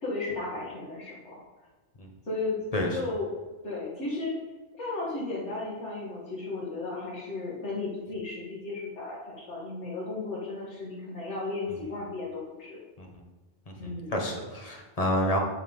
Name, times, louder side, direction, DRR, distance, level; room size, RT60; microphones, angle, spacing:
voice 1, 0.0-1.4 2.3-2.6 2.9-3.3 3.6-4.3 4.8-12.8 13.8-14.2, left 3 dB, 75° left, -7 dB, 2.3 m, -34 dB
voice 2, 13.8-15.4, equal, 35° left, 1 dB, 1.3 m, -29 dB
10.5 x 4.0 x 5.3 m, 1.2 s
omnidirectional pair, 1.2 m